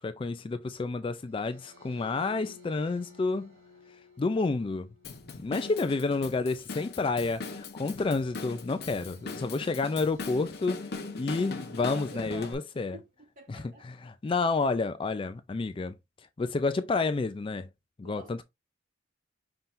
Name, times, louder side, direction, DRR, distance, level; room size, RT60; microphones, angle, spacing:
voice 1, 0.0-3.5 4.2-4.9 5.4-10.9 11.1-13.0 13.5-15.9 16.4-17.7 18.0-18.4, left 3 dB, 25° left, 0.3 m, -30 dB
sound 1, 1.2-12.6, left 3 dB, 75° right, 2.6 m, -56 dB
Drum kit / Drum, 5.0-12.5, left 3 dB, 55° left, 0.8 m, -40 dB
voice 2, 11.8-13.9 18.0-18.4, right 1 dB, 45° right, 1.7 m, -48 dB
5.7 x 3.7 x 2.5 m
head